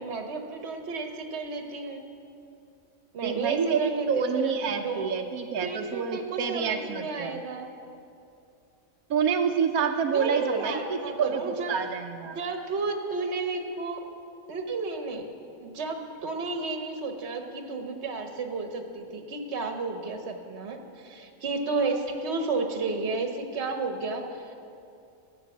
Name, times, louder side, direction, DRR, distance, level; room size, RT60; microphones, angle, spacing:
voice 1, 0.0-2.0 3.1-5.0 5.6-7.7 10.1-11.8 12.3-14.1 14.5-15.2 15.6-24.5, right 3 dB, 50° right, 4 dB, 1.3 m, -32 dB
voice 2, 3.2-7.4 9.1-12.4, right 6 dB, 85° right, 5 dB, 1.2 m, -28 dB
14.0 x 8.3 x 7.1 m, 2.6 s
omnidirectional pair, 1.5 m